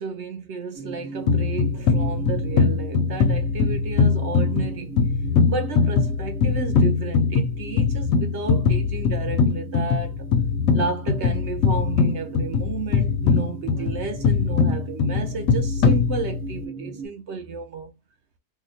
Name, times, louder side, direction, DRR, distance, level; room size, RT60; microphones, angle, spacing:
voice 1, 0.0-5.0 5.5-10.3 10.7-17.9, right 4 dB, 65° right, 0.7 m, -32 dB
sound 1, 0.8-17.1, right 4 dB, 5° right, 0.6 m, -38 dB
sound 2, 1.3-16.6, left 5 dB, 70° left, 0.8 m, -22 dB
2.8 x 2.1 x 4.0 m
omnidirectional pair, 1.8 m